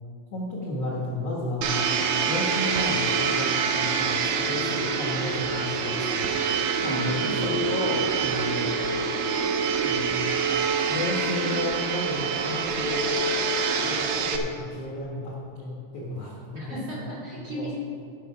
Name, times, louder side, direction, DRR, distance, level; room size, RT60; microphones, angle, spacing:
voice 1, 0.3-1.9 2.2-8.8 9.8-10.3 10.9-13.1 13.8-17.1 17.5-17.7, left 1 dB, 75° left, -4 dB, 1.4 m, -33 dB
Domestic sounds home sounds, 1.6-14.4, right 5 dB, 85° right, 2.9 m, -26 dB
voice 2, 6.8-7.4 16.6-17.7, equal, 35° right, -8 dB, 3.1 m, -35 dB
14.0 x 6.2 x 5.6 m, 2.5 s
omnidirectional pair, 5.2 m